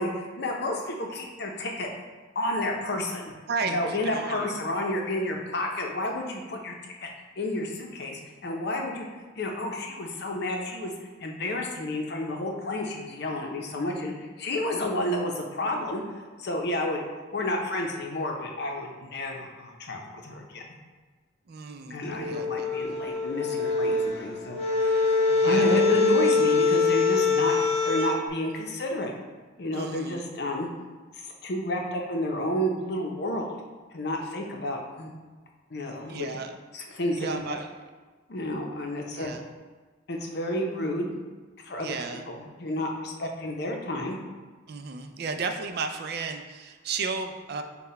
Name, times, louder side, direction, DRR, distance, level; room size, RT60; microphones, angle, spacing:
voice 1, 0.0-1.9 2.3-3.3 3.6-6.8 7.0-7.1 7.4-9.1 9.4-10.9 11.2-16.0 16.4-17.0 17.3-20.6 21.9-27.6 27.8-29.1 29.6-30.7 31.1-33.6 33.9-35.1 35.7-36.3 36.7-37.6 38.3-39.3 40.1-41.2 41.6-44.2, left 1 dB, 60° left, 1 dB, 0.7 m, -31 dB
voice 2, 3.5-4.6 21.5-22.9 25.3-25.8 29.7-30.2 36.1-36.5 37.2-37.7 39.1-39.4 41.8-42.2 44.7-47.6, right 4 dB, 55° right, 6 dB, 0.4 m, -34 dB
sound 1, 22.0-28.2, left 4 dB, 30° left, 1.3 m, -24 dB
5.7 x 2.3 x 4.1 m, 1.3 s
head